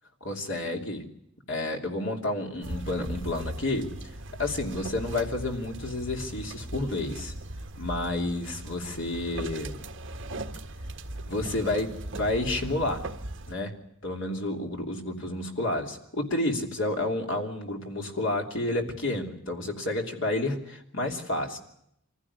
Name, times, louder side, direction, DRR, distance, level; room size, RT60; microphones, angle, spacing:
voice 1, 0.2-1.0 1.5-3.9 4.4-7.3 7.8-9.8 11.3-13.0 13.5-13.7 14.0-21.6, left 2 dB, 60° left, 2 dB, 3.1 m, -30 dB
sound 1, 2.6-13.6, right 1 dB, 55° right, 1.7 m, -38 dB
24.5 x 16.0 x 9.8 m, 0.77 s
head